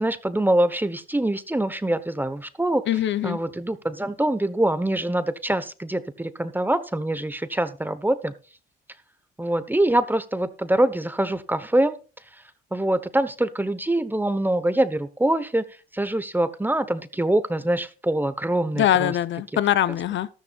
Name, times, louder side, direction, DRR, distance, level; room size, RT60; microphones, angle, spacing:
voice 1, 0.0-2.8 3.2-8.3 9.4-12.0 12.7-15.6 15.9-19.2, right 1 dB, 10° right, 1.1 m, -24 dB
voice 2, 2.9-3.4 18.8-20.3, left 11 dB, 70° left, 0.9 m, -22 dB
13.5 x 13.0 x 2.5 m
cardioid pair, 90°, 20 cm